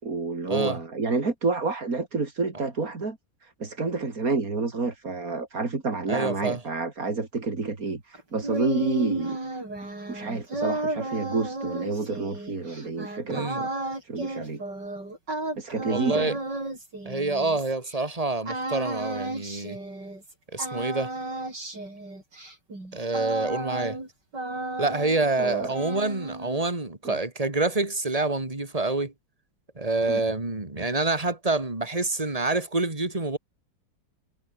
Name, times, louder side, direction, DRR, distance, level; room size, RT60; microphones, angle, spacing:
voice 1, 0.0-3.2 3.4-9.4 10.1-13.7 14.0-14.6 15.6-16.4 25.4-25.7 27.0-27.2 30.1-30.2, right 3 dB, 50° right, 3.7 m, -29 dB
voice 2, 6.1-6.6 13.3-13.6 15.9-16.3 17.0-19.8 20.5-21.1 22.9-24.0 24.8-29.1 29.8-33.4, right 3 dB, 20° right, 3.4 m, -27 dB
sound 1, 8.1-18.0 18.5-20.3 20.6-24.1 24.3-25.4 25.7-26.6, right 2 dB, 65° right, 8.9 m, -33 dB
omnidirectional pair, 2.0 m